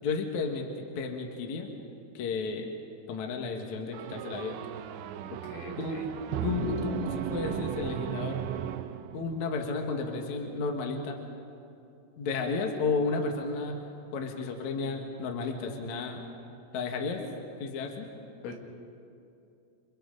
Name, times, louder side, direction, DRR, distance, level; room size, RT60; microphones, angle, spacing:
voice 1, 0.0-0.7 1.0-1.7 2.1-2.7 3.1-4.6 5.8-6.0 6.4-8.4 9.1-11.2 12.2-13.8 14.1-16.2 16.7-17.2 17.6-18.1, left 4 dB, 55° left, 3 dB, 2.3 m, -32 dB
sound 1, 3.9-9.5, right 11 dB, 80° right, 2.7 m, -35 dB
voice 2, 5.4-6.1 18.4-18.5, left 4 dB, 75° left, 1 dB, 4.4 m, -41 dB
29.5 x 27.5 x 4.0 m, 2.6 s
omnidirectional pair, 5.5 m